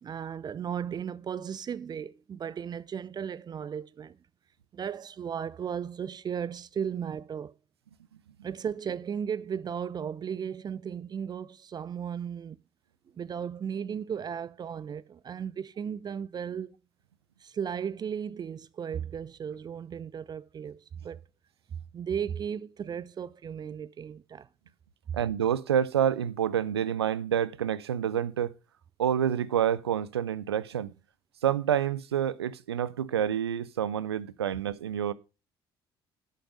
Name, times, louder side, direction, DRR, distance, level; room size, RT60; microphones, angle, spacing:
voice 1, 0.0-4.2 4.7-7.5 8.4-12.6 13.2-16.7 17.4-20.8 21.0-21.2 21.9-24.5, right 8 dB, 30° right, 0.5 m, -35 dB
voice 2, 25.1-28.5 29.0-30.9 31.4-35.1, right 9 dB, 80° right, 0.5 m, -28 dB
11.0 x 6.7 x 5.1 m
figure-of-eight pair, 55°, 13 cm